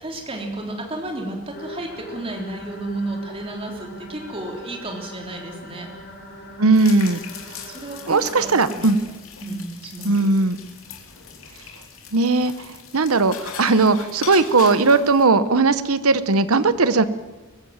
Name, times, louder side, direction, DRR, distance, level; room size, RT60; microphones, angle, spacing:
voice 1, 0.0-5.9 7.6-8.9 9.4-10.3 16.9-17.0, right 1 dB, 25° right, 1 dB, 3.4 m, -32 dB
sound 1, 1.5-9.0, equal, 45° left, 4.2 m, -41 dB
voice 2, 6.6-7.2 8.1-9.0 10.0-10.6 12.1-17.0, right 3 dB, 75° right, 13 dB, 1.0 m, -18 dB
sound 2, 6.7-15.2, left 7 dB, 65° left, 2.9 m, -40 dB
23.0 x 15.5 x 7.3 m, 1.3 s
head